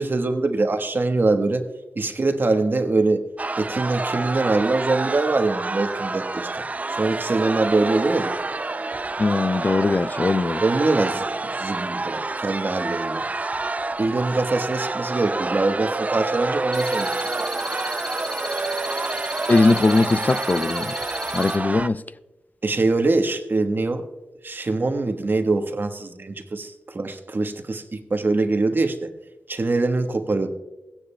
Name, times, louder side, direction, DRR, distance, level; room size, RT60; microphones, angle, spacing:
voice 1, 0.0-1.7 2.0-3.2 3.6-6.6 6.9-8.3 10.6-11.2 11.6-13.2 14.0-17.1 22.6-24.0 24.4-29.1 29.5-30.5, right 3 dB, 50° right, 1.1 m, -23 dB
sound 1, 3.4-21.9, right 3 dB, 35° right, 0.4 m, -28 dB
voice 2, 9.2-10.6 19.5-20.9 21.3-22.0, left 3 dB, 40° left, 0.4 m, -20 dB
sound 2, 16.7-21.6, left 1 dB, 5° left, 1.6 m, -34 dB
16.0 x 9.9 x 2.2 m
cardioid pair, 40°, 4 cm